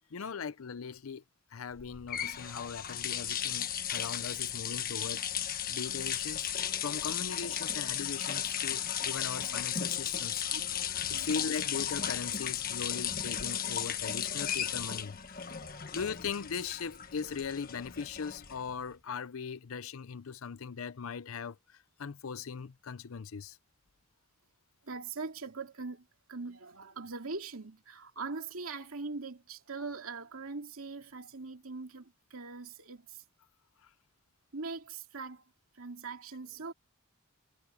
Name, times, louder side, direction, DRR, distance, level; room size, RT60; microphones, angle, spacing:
voice 1, 0.1-1.2 1.5-6.5 6.8-10.4 11.1-15.2 15.9-23.6 33.8-33.9, left 6 dB, 75° left, 0.6 m, -39 dB
sound 1, 1.8-18.8, left 9 dB, 45° left, 1.4 m, -35 dB
voice 2, 10.5-11.5 15.5-16.0 24.8-33.2 34.5-35.4 35.7-36.7, right 4 dB, 80° right, 2.3 m, -42 dB
head